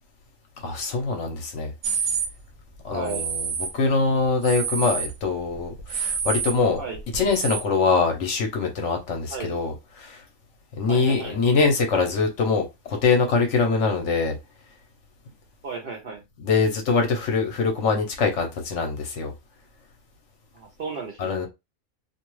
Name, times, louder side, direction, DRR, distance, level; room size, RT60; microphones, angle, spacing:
voice 1, 0.6-1.7 2.8-6.8 7.1-10.2 10.8-14.4 16.4-19.3 21.2-21.5, left 4 dB, 65° left, 1.0 m, -23 dB
sound 1, 1.8-2.3 3.1-3.7 4.2-5.2 5.5-7.6, right 6 dB, 80° right, 1.0 m, -28 dB
voice 2, 2.9-3.2 6.8-7.0 9.3-9.5 10.9-11.4 15.6-16.2 20.5-21.4, right 4 dB, 55° right, 0.6 m, -34 dB
2.5 x 2.3 x 3.1 m
omnidirectional pair, 1.4 m